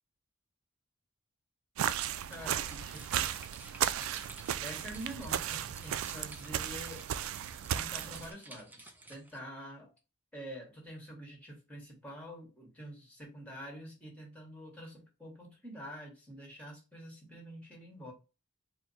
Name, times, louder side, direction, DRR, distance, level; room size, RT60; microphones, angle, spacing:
sound 1, 1.8-8.3, right 10 dB, 80° right, 0.3 m, -35 dB
voice 1, 2.3-3.3 4.6-7.1 7.7-9.9 10.3-18.1, equal, 5° left, 1.4 m, -47 dB
sound 2, 2.3-9.4, right 2 dB, 10° right, 0.5 m, -53 dB
4.3 x 2.1 x 4.0 m
head